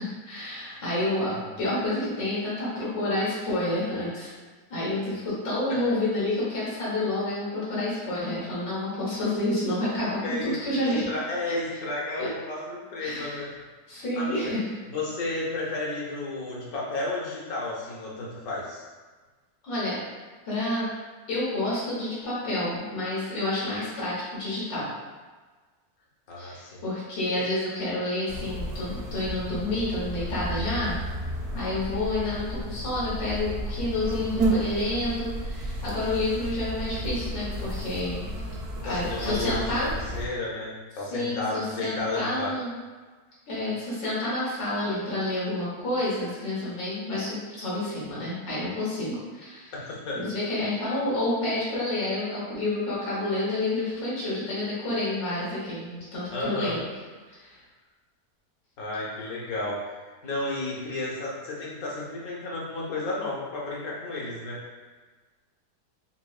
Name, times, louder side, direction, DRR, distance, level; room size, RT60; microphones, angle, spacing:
voice 1, 0.0-4.3 4.7-11.1 11.5-11.6 12.2-12.3 13.0-13.4 13.9-14.6 19.6-20.0 20.5-20.9 21.3-24.9 26.4-31.0 31.5-38.3 38.8-39.9 41.1-42.7 43.5-49.7 50.1-56.9 57.3-57.6, left 1 dB, 90° left, -8 dB, 2.0 m, -29 dB
voice 2, 1.3-1.6 10.2-13.5 14.2-14.5 14.9-18.9 26.3-26.8 27.3-27.4 38.8-42.5 49.7-50.2 56.3-56.8 58.8-59.8 60.1-64.6, left 2 dB, 60° left, -5 dB, 1.2 m, -32 dB
sound 1, 28.3-40.3, right 1 dB, 65° right, 0.6 m, -32 dB
5.9 x 2.2 x 2.4 m, 1.4 s
omnidirectional pair, 1.9 m